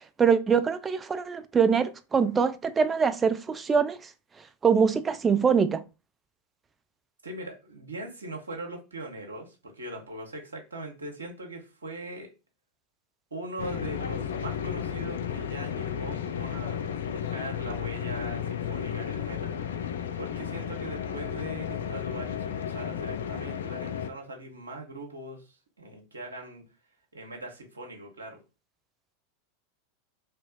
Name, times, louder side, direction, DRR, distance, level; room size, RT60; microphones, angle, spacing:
voice 1, 0.2-4.0 4.6-5.8, right 6 dB, 20° right, 0.3 m, -23 dB
voice 2, 7.2-12.3 13.3-16.8 17.1-19.7 20.2-25.5 25.8-26.6 27.1-28.4, right 1 dB, 80° right, 0.9 m, -40 dB
sound 1, 13.6-24.1, left 8 dB, 65° left, 0.3 m, -33 dB
2.8 x 2.2 x 3.9 m
figure-of-eight pair, 85°, 0 cm